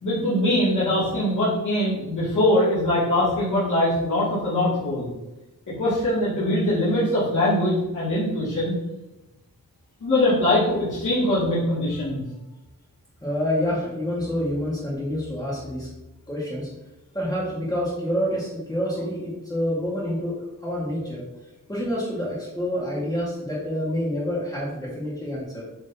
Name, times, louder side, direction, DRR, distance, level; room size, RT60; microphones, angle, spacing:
voice 1, 0.0-5.1 5.7-8.7 10.0-12.2, left 1 dB, 55° left, -11 dB, 2.2 m, -22 dB
voice 2, 13.2-15.9 16.3-16.7 17.1-21.2 21.7-25.6, equal, 10° left, -8 dB, 1.5 m, -27 dB
7.9 x 3.1 x 4.0 m, 0.98 s
wide cardioid pair, 160°, 35 cm